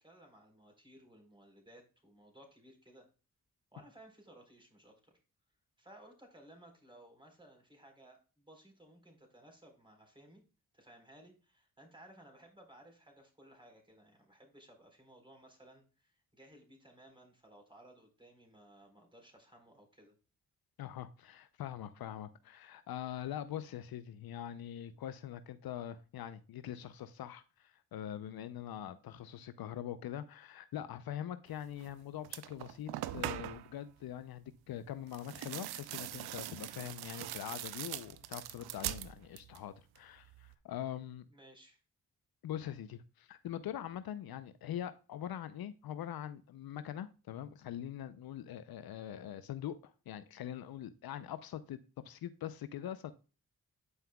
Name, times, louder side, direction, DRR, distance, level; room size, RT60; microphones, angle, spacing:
voice 1, 0.0-3.1 3.7-5.1 5.8-10.4 10.7-20.2 41.3-41.8, right 1 dB, 15° right, 4.0 m, -59 dB
voice 2, 20.8-41.3 42.4-51.8 52.0-53.1, left 11 dB, 70° left, 0.6 m, -43 dB
sound 1, 31.8-31.9 32.2-33.7 35.1-39.7 40.0-40.6, right 13 dB, 85° right, 0.5 m, -42 dB
9.4 x 5.5 x 2.2 m
supercardioid pair, 40°, 37 cm